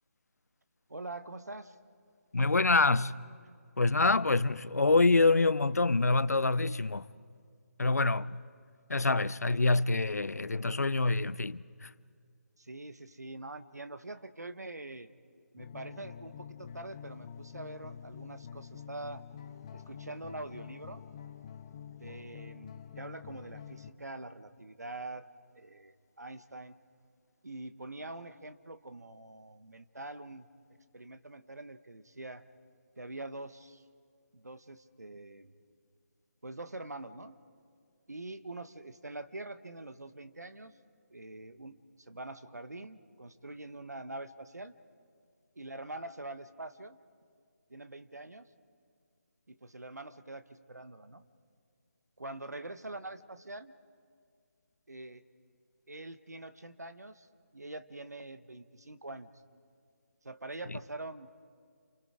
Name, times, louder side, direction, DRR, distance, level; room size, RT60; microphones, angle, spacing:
voice 1, 0.9-1.8 12.6-15.1 15.5-19.2 19.7-21.0 21.9-25.3 25.5-26.8 27.4-30.5 30.9-32.4 33.0-33.8 34.3-35.5 36.4-37.4 38.1-40.7 41.1-44.7 45.6-47.0 47.7-48.5 49.5-51.2 52.2-53.8 54.9-55.2 55.9-57.3 57.5-59.3 60.2-61.3, right 2 dB, 80° right, 1.2 m, -44 dB
voice 2, 2.3-3.2 3.8-7.0 7.8-8.4 8.9-11.9, left 3 dB, 75° left, 0.6 m, -26 dB
sound 1, 15.6-23.9, left 8 dB, 25° left, 0.7 m, -47 dB
30.0 x 28.5 x 5.0 m
figure-of-eight pair, 155°, 9 cm